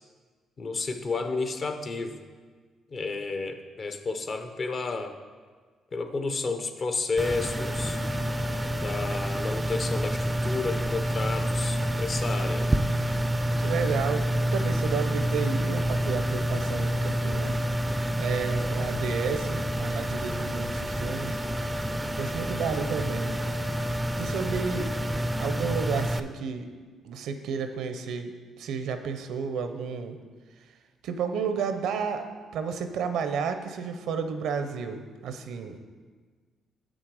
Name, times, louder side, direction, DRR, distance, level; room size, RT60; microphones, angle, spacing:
voice 1, 0.6-2.2 2.9-5.2 5.9-8.0 8.7-12.8, left 3 dB, 45° left, 7 dB, 0.7 m, -31 dB
sound 1, 7.2-26.2, right 1 dB, 15° right, 0.4 m, -28 dB
voice 2, 13.6-17.6 18.2-21.4 22.2-23.3 24.2-25.0 25.4-26.7 27.0-30.2 30.6-30.7 31.0-35.8, right 6 dB, 80° right, 8 dB, 0.6 m, -32 dB
6.8 x 6.2 x 4.8 m, 1.5 s
cardioid pair, 90°, 0 cm